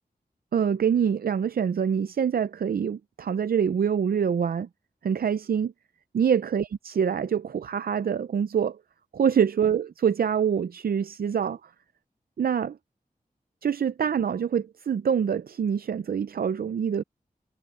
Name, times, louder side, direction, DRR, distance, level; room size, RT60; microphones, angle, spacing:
voice 1, 0.5-4.7 5.0-5.7 6.1-8.8 9.1-11.6 12.4-12.8 13.6-17.0, right 7 dB, 80° right, 0.5 m, -25 dB
wide cardioid pair, 90°, 15 cm